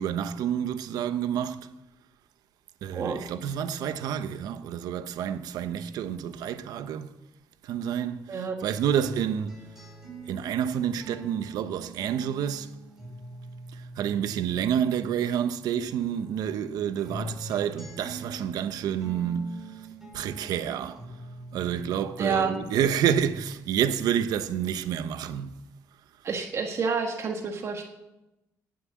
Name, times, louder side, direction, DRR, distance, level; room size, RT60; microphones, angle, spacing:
voice 1, 0.0-1.7 2.8-7.1 7.6-9.6 10.3-12.7 14.0-19.6 20.1-21.0 21.5-25.6, right 9 dB, 75° right, 1.0 m, -29 dB
voice 2, 8.3-8.6 22.2-22.5 26.2-27.9, right 5 dB, 45° right, 1.5 m, -29 dB
sound 1, 9.0-15.6 16.0-23.6 24.0-25.0, right 2 dB, 5° right, 7.6 m, -44 dB
18.5 x 7.7 x 7.6 m
cardioid pair, 130°, 7 cm